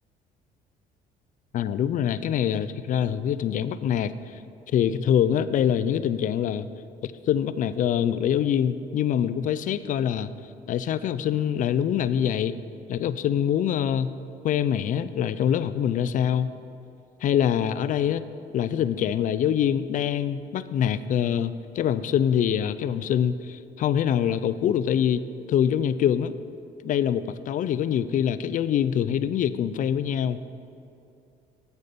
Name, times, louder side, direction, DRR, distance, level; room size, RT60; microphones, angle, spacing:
voice 1, 1.5-4.1 4.7-6.7 7.0-10.3 10.7-12.5 12.9-14.2 14.4-16.5 17.2-18.2 18.5-26.4 26.8-30.4, left 9 dB, 50° left, 14 dB, 0.4 m, -24 dB
8.4 x 8.2 x 5.2 m, 2.6 s
cardioid pair, 110°, 17 cm